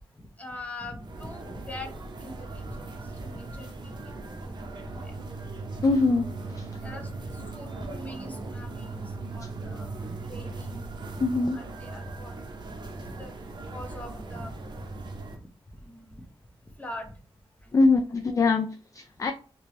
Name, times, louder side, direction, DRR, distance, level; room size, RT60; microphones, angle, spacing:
voice 1, 0.2-1.9 2.2-2.9 3.2-4.1 5.0-5.1 6.8-9.0 9.3-9.9 10.2-10.9 11.5-12.3 12.9-13.3 13.7-14.5 15.8-16.2 16.8-17.1 17.6-17.8, left 1 dB, 15° left, 4 dB, 0.8 m, -42 dB
sound 1, 1.0-15.4, right 3 dB, 45° right, 0.7 m, -39 dB
voice 2, 5.8-6.7 9.4-9.5 11.2-11.6 17.7-19.3, left 3 dB, 30° left, 6 dB, 0.3 m, -23 dB
3.4 x 2.9 x 3.0 m, 0.39 s
wide cardioid pair, 100°, 10 cm